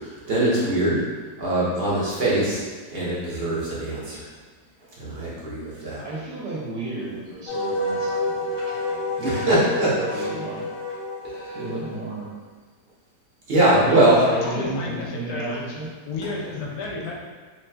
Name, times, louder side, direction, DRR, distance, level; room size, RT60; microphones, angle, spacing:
voice 1, 0.3-1.0 1.4-2.6 2.9-4.2 5.0-6.0 9.2-10.3 11.3-11.6 13.5-14.3, right 1 dB, 50° right, -8 dB, 0.8 m, -22 dB
voice 2, 6.0-9.7 10.0-10.7 11.5-12.3 13.9-15.9, right 2 dB, 80° right, -6 dB, 1.2 m, -33 dB
Wind instrument woodwind instrument, 7.5-12.2, left 1 dB, 60° left, 0.8 m, -29 dB
voice 3, 13.8-17.1, left 3 dB, 75° left, -2 dB, 1.1 m, -32 dB
3.3 x 3.0 x 2.2 m, 1.4 s
omnidirectional pair, 1.8 m